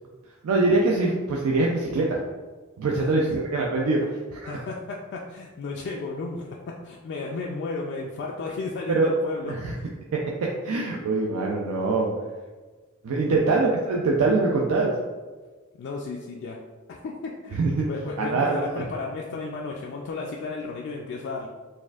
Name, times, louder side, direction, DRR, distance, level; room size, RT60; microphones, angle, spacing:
voice 1, 0.4-2.2 2.8-4.0 4.3-4.6 8.9-9.1 9.5-9.7 10.1-10.2 10.6-12.1 13.0-14.9 17.5-17.9 18.2-18.8, right 3 dB, 85° right, -2 dB, 0.4 m, -23 dB
voice 2, 4.4-9.9 13.3-13.6 15.8-16.6 16.9-21.5, left 3 dB, 55° left, -1 dB, 0.3 m, -34 dB
4.2 x 2.5 x 2.3 m, 1.3 s
head